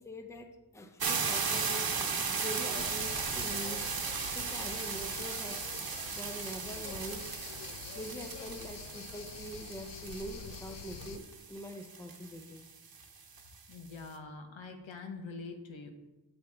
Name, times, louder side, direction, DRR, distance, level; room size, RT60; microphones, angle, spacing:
voice 1, 0.0-1.9 2.4-3.9 4.3-5.9 6.1-7.3 8.0-12.6, equal, 5° left, 6 dB, 0.6 m, -44 dB
sound 1, 1.0-13.7, right 5 dB, 50° right, 1.0 m, -36 dB
sound 2, 2.7-11.2, left 8 dB, 65° left, 0.6 m, -46 dB
voice 2, 13.7-15.9, left 4 dB, 80° left, 4 dB, 1.2 m, -44 dB
8.7 x 8.0 x 3.5 m, 1.1 s
wide cardioid pair, 145°, 46 cm